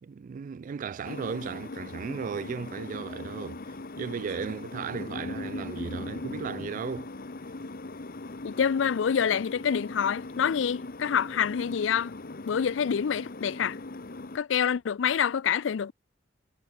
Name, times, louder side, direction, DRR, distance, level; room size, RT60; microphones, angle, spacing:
voice 1, 0.0-7.1, right 6 dB, 45° right, 0.3 m, -36 dB
Tea Kettle Heating and Boiling, 1.0-14.4, left 2 dB, 50° left, 1.1 m, -40 dB
voice 2, 8.4-12.1 12.5-13.8 14.3-15.9, left 7 dB, 85° left, 0.4 m, -27 dB
head